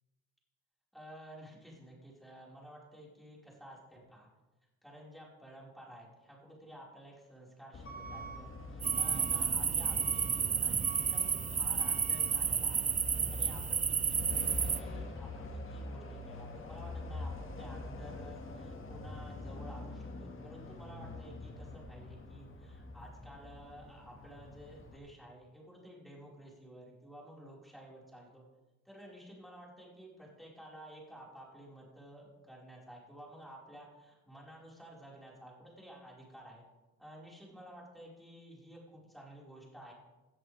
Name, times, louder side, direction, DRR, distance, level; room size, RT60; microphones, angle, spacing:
voice 1, 0.9-4.3 4.8-12.9 13.3-28.5 28.9-36.6 37.0-39.9, right 1 dB, ahead, -4 dB, 5.2 m, -52 dB
Truck / Alarm, 7.7-25.0, left 2 dB, 45° left, 2.1 m, -44 dB
sound 1, 8.8-14.8, right 6 dB, 25° right, 0.5 m, -31 dB
18.0 x 10.5 x 3.6 m, 1.1 s
cardioid pair, 90°, 30 cm